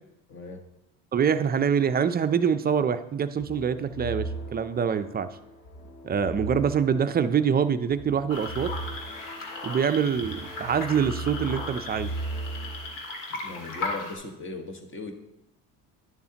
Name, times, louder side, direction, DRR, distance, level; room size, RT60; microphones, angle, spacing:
voice 1, 0.3-0.6 13.3-15.1, left 3 dB, 35° left, 5 dB, 1.3 m, -38 dB
voice 2, 1.1-5.3 6.0-8.7 9.6-12.1, right 7 dB, 25° right, 11 dB, 0.5 m, -25 dB
sound 1, 3.4-12.9, right 2 dB, 80° left, 3.2 m, -38 dB
sound 2, 8.3-14.2, left 3 dB, 65° left, 1.8 m, -37 dB
11.0 x 6.9 x 2.9 m, 0.89 s
cardioid pair, 100°, 35 cm